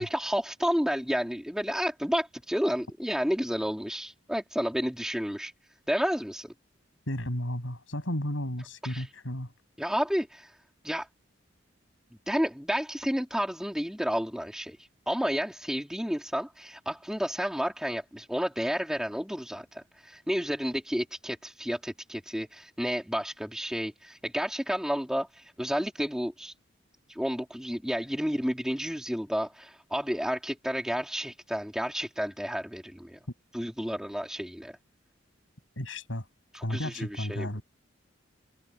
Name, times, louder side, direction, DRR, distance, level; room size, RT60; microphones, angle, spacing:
voice 1, 0.0-5.5 5.9-6.5 8.8-9.1 9.8-10.6 10.8-11.1 12.3-14.8 15.1-26.5 27.1-33.2 33.5-34.8 36.5-37.6, equal, 5° right, 2.3 m, -31 dB
voice 2, 7.1-9.5 35.8-36.3 36.6-37.6, left 1 dB, 85° left, 6.1 m, -33 dB
head